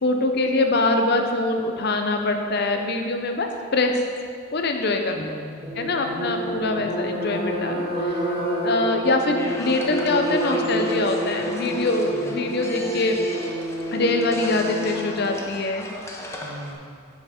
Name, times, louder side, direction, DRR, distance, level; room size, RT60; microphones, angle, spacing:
voice 1, 0.0-4.0 4.5-5.4 5.8-8.3 8.6-13.2 13.9-15.9, left 2 dB, 60° left, 4 dB, 0.7 m, -24 dB
voice 2, 5.1-6.9 12.1-12.4 16.4-17.1, equal, 45° right, 0 dB, 1.0 m, -41 dB
sound 1, 5.6-15.2, equal, 30° right, 1.8 m, -28 dB
sound 2, 9.4-16.7, left 1 dB, 15° left, 0.8 m, -38 dB
9.4 x 5.7 x 4.3 m, 2.2 s
head